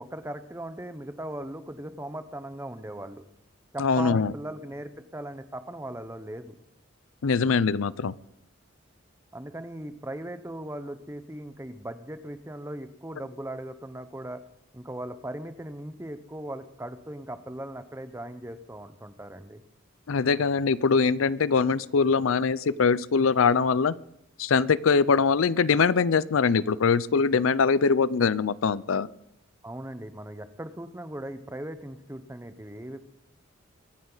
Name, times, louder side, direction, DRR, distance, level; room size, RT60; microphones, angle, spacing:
voice 1, 0.0-3.2 3.7-6.5 9.3-14.4 14.7-19.6 29.6-33.0, right 1 dB, 15° right, 10 dB, 0.9 m, -38 dB
voice 2, 3.8-4.3 7.2-8.1 20.1-23.9 24.4-29.1, left 5 dB, 85° left, 19 dB, 0.5 m, -22 dB
23.5 x 10.5 x 4.0 m, 0.79 s
head